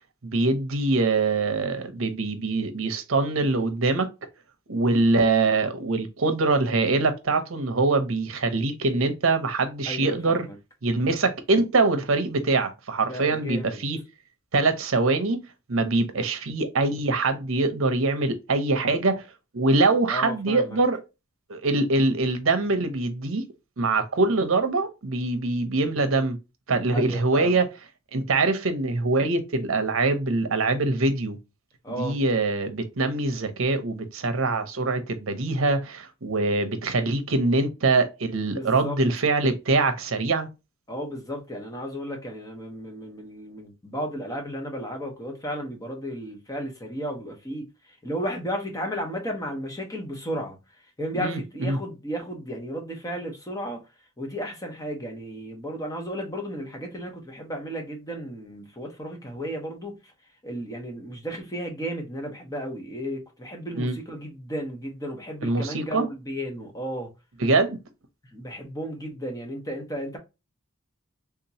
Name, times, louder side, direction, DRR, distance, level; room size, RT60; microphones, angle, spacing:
voice 1, 0.2-4.1 4.7-10.5 10.8-14.0 14.5-15.4 15.7-19.2 19.5-21.0 21.5-23.4 23.8-26.4 26.7-27.7 28.1-31.4 31.9-40.5 51.2-51.8 63.8-63.9 65.4-66.1 67.4-67.8, right 3 dB, 70° right, 0.7 m, -23 dB
voice 2, 9.9-10.6 13.0-13.8 20.1-20.8 26.9-27.6 31.8-32.2 38.5-39.0 40.9-50.6 51.0-53.8 54.2-60.0 60.4-67.1 68.3-70.2, equal, 15° left, 0.9 m, -34 dB
3.5 x 2.9 x 2.7 m
head